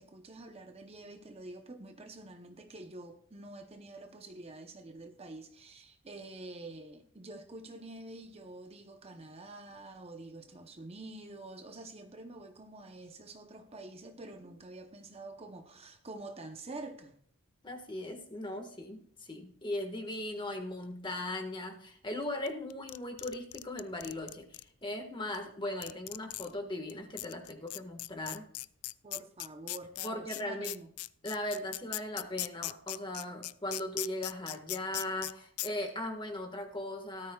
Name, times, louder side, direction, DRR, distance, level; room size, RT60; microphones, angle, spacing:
voice 1, 0.0-17.2 29.0-30.9, right 2 dB, 25° right, 0.8 m, -47 dB
voice 2, 17.6-28.5 30.0-30.8 31.2-37.3, left 1 dB, 20° left, 1.6 m, -38 dB
sound 1, 22.5-24.6 25.3-25.4 25.8-26.5 26.9-27.0 27.2-35.3 35.6-35.7, left 18 dB, 75° left, 0.4 m, -38 dB
18.0 x 13.0 x 2.4 m
head